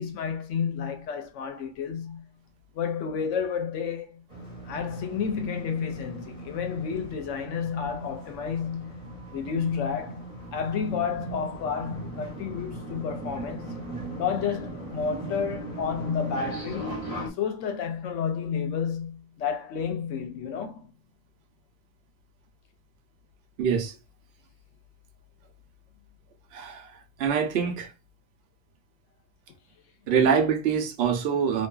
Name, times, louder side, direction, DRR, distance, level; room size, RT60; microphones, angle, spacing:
voice 1, 0.0-2.3 2.7-4.2 4.6-9.0 9.3-13.8 14.2-20.9, left 6 dB, 75° left, 0.9 m, -31 dB
sound 1, 4.3-17.3, right 2 dB, 30° right, 0.8 m, -39 dB
voice 2, 23.6-23.9 26.5-27.9 30.1-31.7, right 6 dB, 65° right, 0.8 m, -25 dB
2.6 x 2.3 x 2.2 m
omnidirectional pair, 1.3 m